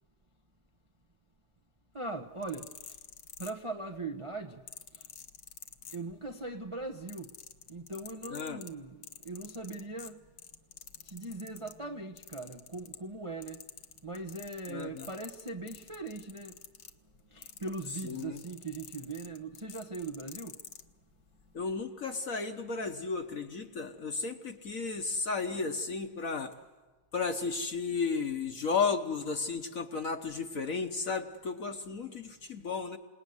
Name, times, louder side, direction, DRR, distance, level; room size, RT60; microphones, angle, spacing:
voice 1, 1.9-2.7 3.4-4.6 5.9-7.3 7.7-10.2 11.1-13.6 14.0-16.6 17.3-20.6, right 3 dB, 30° right, 0.5 m, -40 dB
sound 1, 2.3-4.0 4.7-6.4 6.7-11.8 12.2-13.2 13.4-20.9 21.6-21.8, left 8 dB, 65° left, 1.9 m, -49 dB
voice 2, 8.3-8.6 14.7-15.1 18.0-18.4 21.5-26.5 27.1-33.0, left 4 dB, 45° left, 1.2 m, -34 dB
28.0 x 18.5 x 9.6 m
omnidirectional pair, 2.4 m